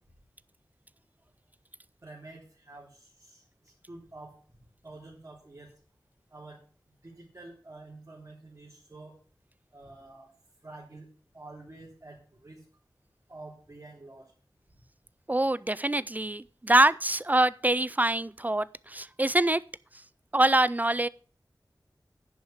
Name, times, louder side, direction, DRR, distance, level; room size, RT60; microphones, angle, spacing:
voice 1, 2.0-4.4 4.8-5.7 6.3-6.6 7.0-9.1 9.7-10.3 10.6-11.1 11.3-12.6 13.3-14.3, right 2 dB, 40° right, 3.5 m, -48 dB
voice 2, 15.3-19.6 20.3-21.1, right 1 dB, 20° right, 0.3 m, -24 dB
10.5 x 4.9 x 7.2 m
wide cardioid pair, 75°, 7 cm